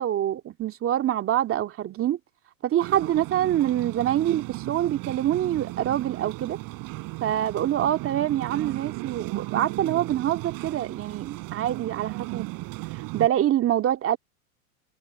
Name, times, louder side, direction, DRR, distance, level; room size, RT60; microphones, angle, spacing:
voice 1, 0.0-2.2 2.6-6.6 7.2-12.5 12.9-14.2, right 11 dB, 30° right, 2.2 m, -25 dB
sound 1, 2.8-13.3, right 23 dB, 50° right, 3.9 m, -35 dB
hypercardioid pair, 110°, 44 cm